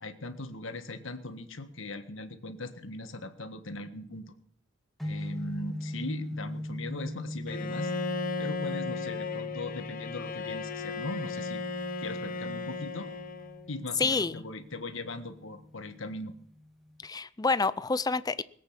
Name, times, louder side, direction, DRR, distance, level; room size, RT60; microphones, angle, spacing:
voice 1, 0.0-4.3 5.0-8.0 8.4-11.6 12.0-13.1 13.7-16.3, left 2 dB, 70° left, 1.6 m, -39 dB
sound 1, 5.0-17.1, left 1 dB, ahead, 1.3 m, -41 dB
Bowed string instrument, 7.5-13.7, left 4 dB, 45° left, 0.9 m, -35 dB
voice 2, 14.0-14.4 17.0-18.4, left 4 dB, 20° left, 0.5 m, -28 dB
20.5 x 8.6 x 5.9 m
head